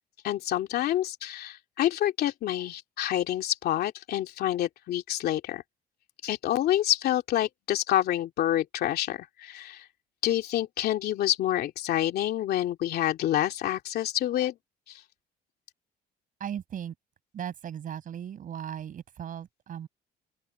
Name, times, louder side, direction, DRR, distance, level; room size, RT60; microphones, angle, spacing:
voice 1, 0.2-5.6 6.2-9.8 10.2-14.5, left 12 dB, 70° left, 2.8 m, -27 dB
voice 2, 16.4-16.9 17.3-19.9, right 9 dB, 50° right, 7.9 m, -37 dB
open air
cardioid pair, 110°, 17 cm